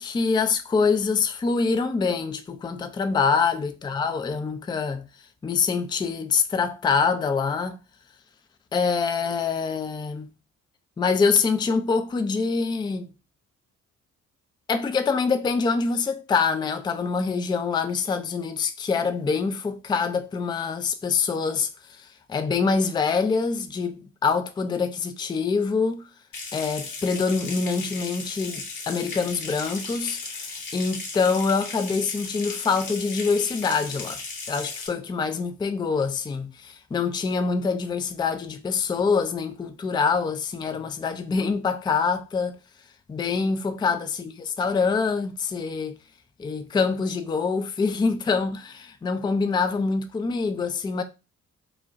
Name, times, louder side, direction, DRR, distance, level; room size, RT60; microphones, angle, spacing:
voice 1, 0.0-5.1 5.4-7.8 8.7-10.3 11.0-13.1 14.7-26.1 26.5-34.2 34.5-42.6 43.1-46.0 46.4-51.0, left 5 dB, 10° left, 0.4 m, -25 dB
Water tap faucet / Sink (filling or washing) / Trickle dribble, 26.3-34.9, left 3 dB, 50° left, 1.2 m, -36 dB
5.1 x 2.3 x 2.5 m
figure-of-eight pair, 40°, 42 cm